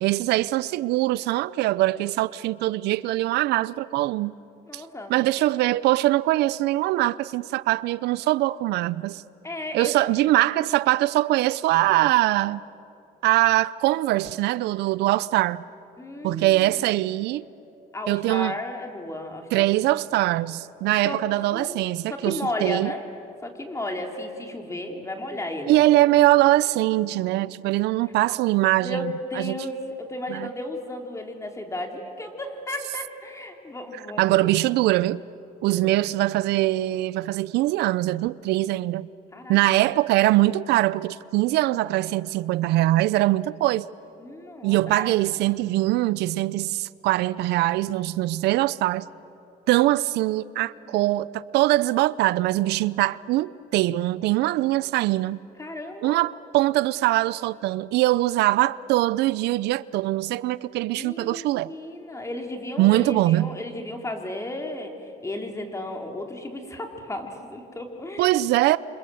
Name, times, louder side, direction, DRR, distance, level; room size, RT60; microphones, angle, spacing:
voice 1, 0.0-4.3 4.7-4.8 5.1-9.2 9.7-12.6 13.2-15.6 16.2-17.5 18.1-18.5 19.5-22.9 25.7-29.5 30.3-30.5 34.2-35.2 35.6-39.1 39.5-43.9 44.6-49.1 49.7-55.5 56.0-61.7 62.8-63.6 68.2-68.8, right 17 dB, 80° right, 0.5 m, -22 dB
voice 2, 4.7-5.7 9.4-10.1 16.0-16.8 17.9-19.7 21.0-21.2 21.5-23.1 23.4-25.9 28.0-28.1 28.8-34.5 35.6-36.0 39.3-39.6 44.2-45.1 50.8-51.1 54.4-54.6 55.6-56.2 60.9-68.4, left 1 dB, 15° left, 3.3 m, -34 dB
28.0 x 25.5 x 7.8 m
cardioid pair, 110°, 17 cm